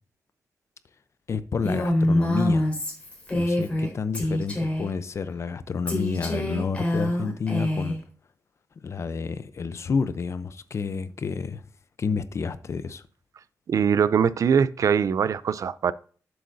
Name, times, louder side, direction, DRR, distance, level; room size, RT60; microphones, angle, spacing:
voice 1, 1.3-2.7 3.3-8.0 8.8-11.7 12.0-13.0, left 5 dB, 55° left, 0.6 m, -29 dB
Female speech woman speaking, 1.6-3.9 4.1-4.9 5.9-8.0, left 1 dB, 20° left, 4.3 m, -25 dB
voice 2, 13.7-15.9, right 7 dB, 70° right, 0.4 m, -22 dB
10.5 x 7.8 x 2.7 m
wide cardioid pair, 105°, 6 cm